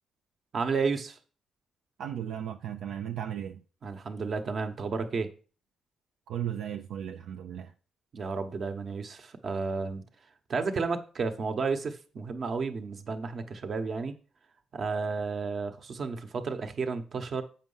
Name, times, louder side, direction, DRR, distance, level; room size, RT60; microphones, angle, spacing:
voice 1, 0.5-1.2 3.8-5.3 8.1-10.0 10.5-14.1 14.7-17.4, right 4 dB, 50° right, 1.1 m, -32 dB
voice 2, 2.0-3.6 6.3-7.7, right 10 dB, 80° right, 0.5 m, -35 dB
7.4 x 5.5 x 5.6 m
cardioid pair, 80°, 0 cm